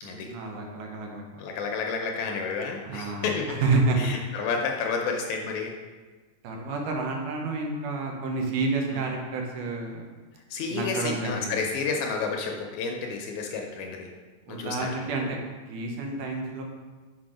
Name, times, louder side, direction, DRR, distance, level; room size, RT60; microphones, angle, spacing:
voice 1, 0.1-1.2 2.8-4.1 6.4-10.0 10.7-11.7 14.5-15.4 15.7-16.6, right 3 dB, 85° right, 1 dB, 2.4 m, -29 dB
voice 2, 1.4-3.7 4.0-5.7 8.9-9.0 10.5-14.1 14.5-15.1, left 5 dB, 75° left, 2 dB, 1.9 m, -30 dB
6.0 x 4.1 x 4.9 m, 1.3 s
omnidirectional pair, 3.6 m